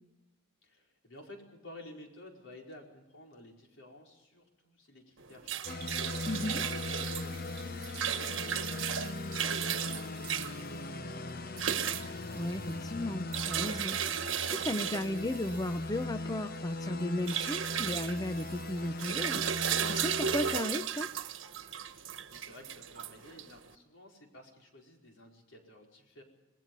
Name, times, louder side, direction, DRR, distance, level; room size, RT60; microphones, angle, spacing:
voice 1, 0.6-6.1 6.3-11.7 21.9-26.2, left 1 dB, 85° left, 1 dB, 4.9 m, -53 dB
sound 1, 5.2-23.7, right 8 dB, 85° right, 1.2 m, -35 dB
sound 2, 5.6-20.6, left 2 dB, 50° left, 0.8 m, -40 dB
voice 2, 6.3-6.6 12.3-21.1, left 1 dB, 20° left, 11 dB, 0.7 m, -35 dB
27.0 x 19.5 x 5.4 m, 1.1 s
head